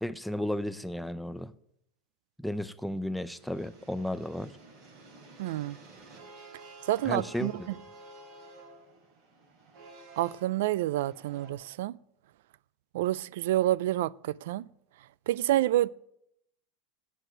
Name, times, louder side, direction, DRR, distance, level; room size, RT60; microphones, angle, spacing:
voice 1, 0.0-1.5 2.4-4.6 7.1-7.7, left 1 dB, ahead, 0.5 m, -33 dB
sound 1, 3.2-11.5, right 3 dB, 50° right, 4.9 m, -52 dB
voice 2, 5.4-5.8 6.9-7.5 10.2-12.0 12.9-14.6 15.3-15.9, right 14 dB, 80° right, 0.3 m, -28 dB
9.1 x 7.9 x 9.0 m
supercardioid pair, 150°, 0 cm